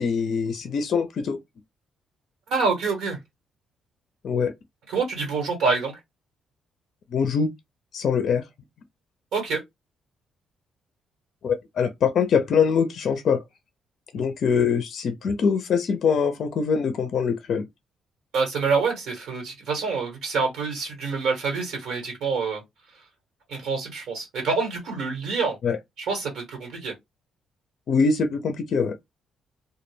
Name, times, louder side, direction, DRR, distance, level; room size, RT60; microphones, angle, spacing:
voice 1, 0.0-1.4 4.2-4.5 7.1-7.5 7.9-8.4 11.4-13.4 14.1-17.7 25.6-25.8 27.9-29.0, left 6 dB, 60° left, 0.4 m, -23 dB
voice 2, 2.5-3.2 4.9-5.9 9.3-9.6 18.3-22.6 23.5-25.6 26.0-26.9, right 4 dB, 80° right, 1.2 m, -26 dB
2.2 x 2.1 x 3.1 m
cardioid pair, 90°, 0 cm